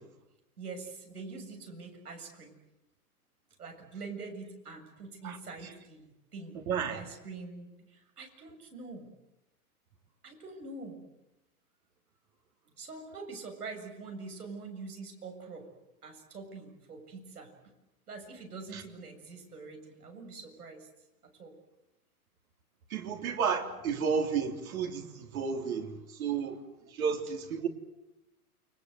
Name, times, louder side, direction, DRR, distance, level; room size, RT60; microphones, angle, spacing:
voice 1, 0.6-2.6 3.6-9.1 10.2-11.0 12.8-15.7 16.0-17.5 18.1-20.9 21.2-21.5 23.5-23.7 26.9-27.0, right 4 dB, 85° right, 4 dB, 7.3 m, -45 dB
voice 2, 6.5-7.0 18.7-18.8 22.9-25.9 26.2-26.6 26.9-27.7, right 6 dB, 65° right, 3 dB, 3.7 m, -32 dB
29.5 x 23.0 x 8.0 m, 0.96 s
hypercardioid pair, 125°, 45 cm